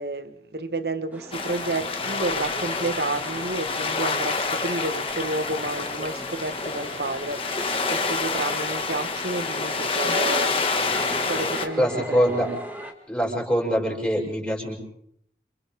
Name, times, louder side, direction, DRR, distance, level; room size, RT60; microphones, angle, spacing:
voice 1, 0.0-7.4 7.9-10.6 11.3-12.5, right 2 dB, 65° right, 1.5 m, -30 dB
sound 1, 1.1-12.9, equal, 10° right, 2.3 m, -41 dB
sound 2, 1.3-11.7, left 4 dB, 30° left, 1.9 m, -27 dB
voice 2, 11.8-12.5 13.1-14.7, equal, 5° left, 6.4 m, -23 dB
29.0 x 29.0 x 3.7 m
head